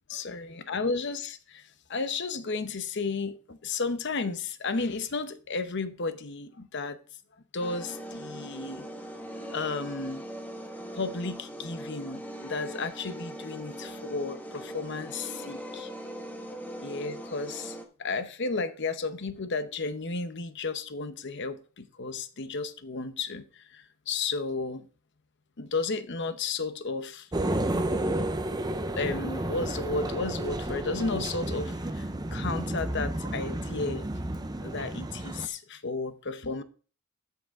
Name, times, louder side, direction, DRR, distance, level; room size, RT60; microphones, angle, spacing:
voice 1, 0.1-7.0 7.5-8.8 9.5-10.2 10.9-15.9 16.8-24.9 25.6-27.3 28.9-32.0 32.3-34.0 34.6-36.6, left 4 dB, 55° left, 0.8 m, -33 dB
sound 1, 7.6-17.8, equal, 10° left, 1.2 m, -40 dB
sound 2, 27.3-35.5, right 1 dB, 20° right, 0.7 m, -31 dB
13.0 x 6.4 x 3.6 m
head